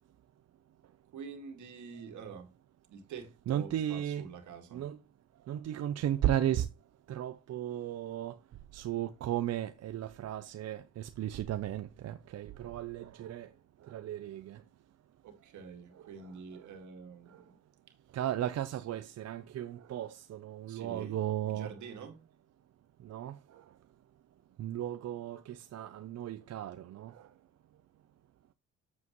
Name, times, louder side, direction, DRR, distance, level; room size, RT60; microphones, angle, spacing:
voice 1, 1.1-2.5 2.9-4.8 15.2-17.6 20.7-21.2 21.5-22.2, right 6 dB, 75° right, 2.0 m, -46 dB
voice 2, 3.5-4.3 4.7-5.0 5.5-6.7 7.1-8.4 8.7-13.5 13.9-14.6 18.1-21.7 23.0-23.4 24.6-27.3, right 11 dB, 60° right, 0.6 m, -35 dB
8.1 x 7.4 x 3.1 m
cardioid pair, 90°, 30 cm